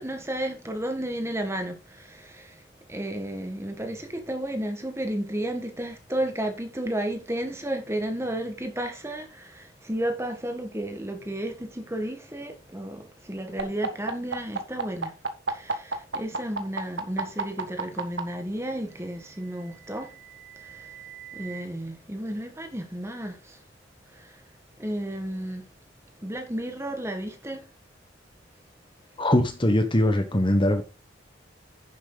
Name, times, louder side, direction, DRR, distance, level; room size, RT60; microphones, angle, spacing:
voice 1, 0.0-2.6 2.9-15.1 15.5-20.1 20.6-20.9 21.3-23.6 24.1-24.4 24.8-25.7 26.2-27.6, right 1 dB, 15° right, 1.7 m, -32 dB
sound 1, 13.6-18.2 19.3-21.6, right 4 dB, 65° right, 1.6 m, -32 dB
voice 2, 29.2-30.8, left 1 dB, 25° left, 1.2 m, -21 dB
10.5 x 7.4 x 4.0 m
head